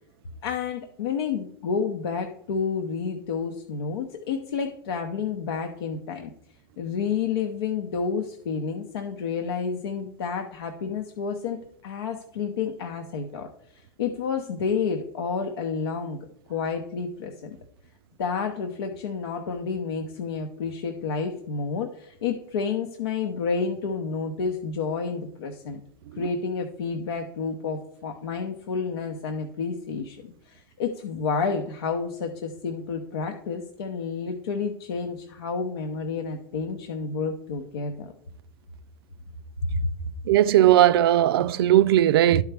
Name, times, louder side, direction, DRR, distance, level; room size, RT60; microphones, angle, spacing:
voice 1, 0.4-6.3 6.8-16.2 16.5-17.6 18.2-25.8 26.2-38.1 39.7-39.9, left 5 dB, 90° left, 0.7 m, -30 dB
voice 2, 40.3-42.4, right 12 dB, 80° right, 0.4 m, -18 dB
11.5 x 4.7 x 3.3 m
hypercardioid pair, 110°, 12 cm